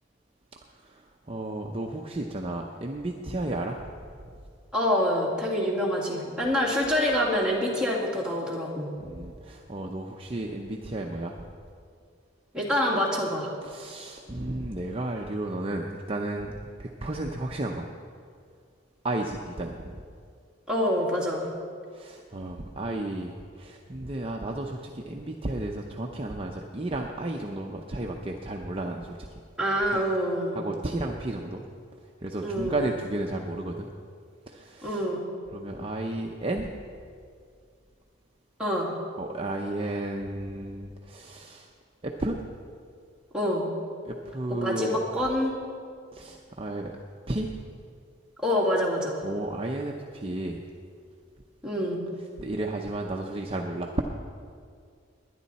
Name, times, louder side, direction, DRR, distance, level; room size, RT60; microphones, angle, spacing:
voice 1, 1.3-3.9 9.0-11.4 13.6-17.9 19.0-19.9 21.9-29.4 29.9-30.0 30.5-31.6 32.2-33.9 34.5-35.0 35.5-36.7 39.2-41.7 42.0-42.4 44.1-45.0 46.1-46.9 47.3-47.5 49.2-50.6 52.4-54.0, right 2 dB, 30° right, 1 dB, 0.7 m, -33 dB
voice 2, 4.7-8.9 12.5-13.5 20.7-21.5 29.6-30.6 32.4-32.8 34.8-35.2 38.6-38.9 43.3-43.7 44.5-45.5 48.4-49.3 51.6-52.0, equal, 5° right, -5 dB, 2.3 m, -26 dB
20.0 x 10.5 x 4.2 m, 2.2 s
head